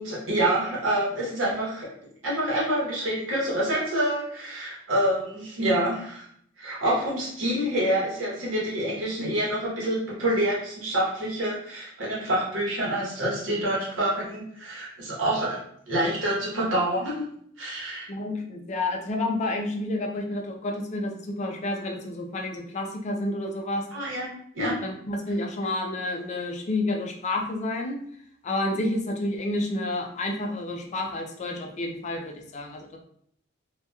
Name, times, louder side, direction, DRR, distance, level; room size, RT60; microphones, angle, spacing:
voice 1, 0.0-1.9 2.2-6.3 6.6-15.6 15.9-17.3 17.6-18.1 23.9-24.3 24.5-24.8, right 1 dB, 75° right, -6 dB, 1.0 m, -27 dB
voice 2, 18.1-23.9 24.8-28.0 28.4-33.0, left 2 dB, 35° left, 2 dB, 0.4 m, -30 dB
2.8 x 2.2 x 2.2 m, 0.66 s
head